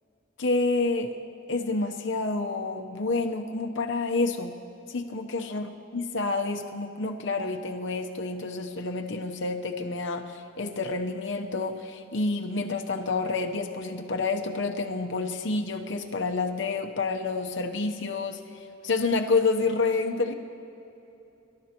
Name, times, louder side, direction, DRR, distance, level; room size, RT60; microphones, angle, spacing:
voice 1, 0.4-1.2 1.5-4.5 4.9-20.3, left 3 dB, 70° left, 4 dB, 0.9 m, -29 dB
24.5 x 12.5 x 3.0 m, 3.0 s
head